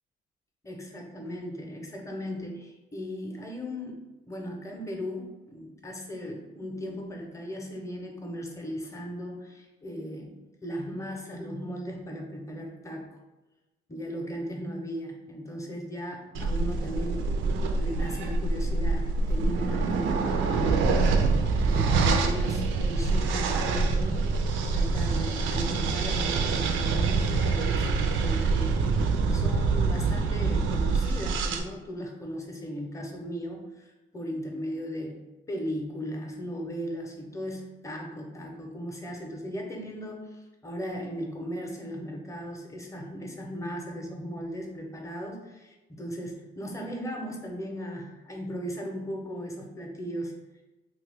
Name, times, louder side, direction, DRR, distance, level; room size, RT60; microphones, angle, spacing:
voice 1, 0.6-4.0 4.3-13.1 13.9-17.4 17.7-21.0 21.7-24.3 24.7-27.9 28.2-28.8 29.3-35.2 35.5-50.3, equal, 15° left, 1 dB, 0.7 m, -37 dB
sound 1, 16.3-31.6, right 4 dB, 75° right, 0.4 m, -25 dB
2.9 x 2.3 x 3.4 m, 1.1 s
cardioid pair, 90°, 20 cm